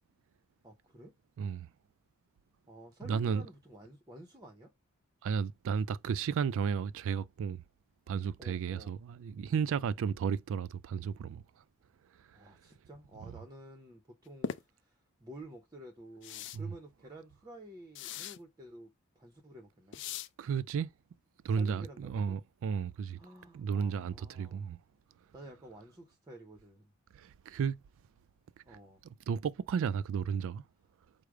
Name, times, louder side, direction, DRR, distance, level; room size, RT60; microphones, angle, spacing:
voice 1, 0.6-1.1 2.7-4.7 8.4-9.0 12.3-18.9 19.2-20.0 21.5-22.4 23.2-24.7 25.3-26.9 28.7-29.0, right 1 dB, 15° right, 0.6 m, -51 dB
voice 2, 1.4-1.7 3.0-3.5 5.2-7.6 8.1-11.4 13.3-13.4 16.5-16.7 20.4-20.9 21.4-23.2 23.5-24.8 27.1-27.8 28.7-28.8 29.3-30.6, right 6 dB, 65° right, 0.3 m, -33 dB
sound 1, 14.4-14.6 16.2-16.6 18.0-18.4 19.9-20.3, left 7 dB, 55° left, 0.4 m, -39 dB
4.8 x 2.0 x 4.6 m
head